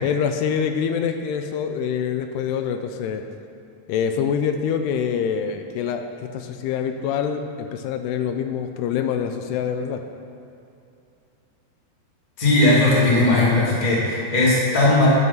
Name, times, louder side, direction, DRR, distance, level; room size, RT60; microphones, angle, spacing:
voice 1, 0.0-3.2 3.9-10.0, left 7 dB, 85° left, 6 dB, 2.6 m, -25 dB
voice 2, 12.4-15.1, left 2 dB, 20° left, -7 dB, 1.5 m, -18 dB
11.0 x 6.2 x 5.6 m, 2.7 s
omnidirectional pair, 4.7 m